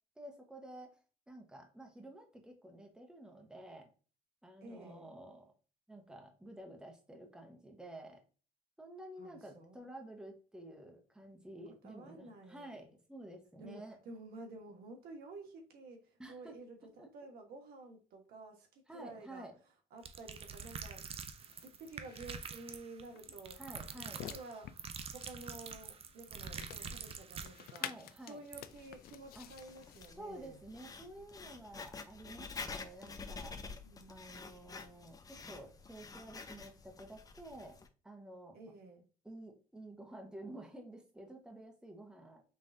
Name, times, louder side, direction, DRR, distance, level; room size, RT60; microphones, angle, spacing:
voice 1, 0.2-1.0 1.3-3.9 4.4-5.5 5.9-8.2 8.8-14.0 16.2-16.6 17.0-17.1 18.9-19.5 23.5-24.3 27.8-28.4 29.3-29.5 30.2-33.6 34.1-38.6 39.2-42.4, right 1 dB, 5° right, 1.1 m, -51 dB
voice 2, 4.6-5.1 9.2-9.9 11.8-12.9 13.6-19.5 19.9-21.2 21.6-23.6 23.9-24.0 24.3-24.8 25.1-27.9 28.2-30.6 33.8-34.5 38.5-39.0, right 2 dB, 80° right, 1.3 m, -51 dB
sound 1, 20.0-27.8 28.2-28.3 28.5-28.6, right 6 dB, 40° right, 0.5 m, -46 dB
sound 2, 21.3-30.1, left 11 dB, 80° left, 0.4 m, -51 dB
Writing, 28.7-37.9, left 4 dB, 25° left, 0.5 m, -49 dB
5.4 x 3.2 x 2.6 m
cardioid pair, 125°, 16 cm